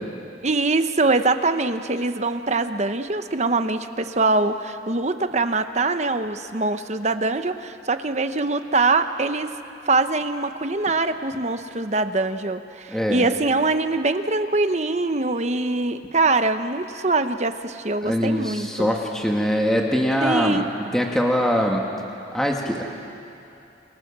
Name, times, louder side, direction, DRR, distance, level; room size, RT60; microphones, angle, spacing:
voice 1, 0.4-9.5 9.9-18.9 20.2-20.7, right 3 dB, 35° right, 9 dB, 1.0 m, -23 dB
voice 2, 12.9-13.2 18.0-20.6 20.9-21.8 22.3-22.8, equal, 5° left, 0 dB, 2.1 m, -22 dB
28.5 x 27.0 x 7.5 m, 2.7 s
head